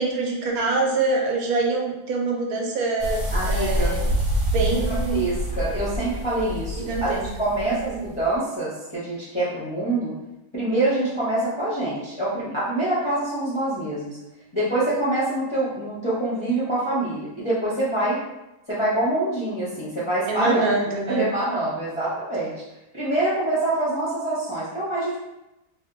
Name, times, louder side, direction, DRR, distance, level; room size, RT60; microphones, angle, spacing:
voice 1, 0.0-4.1 4.5-5.3 6.8-7.2 7.6-8.1 20.3-21.3, right 3 dB, 75° right, 0 dB, 1.0 m, -25 dB
sound 1, 3.0-8.3, equal, 55° right, 0.7 m, -27 dB
voice 2, 3.3-4.0 4.5-10.1 10.5-14.2 14.5-18.2 18.7-20.7 21.1-22.5 22.9-25.2, right 1 dB, 35° left, -10 dB, 0.4 m, -25 dB
2.7 x 2.1 x 3.7 m, 0.96 s
omnidirectional pair, 1.6 m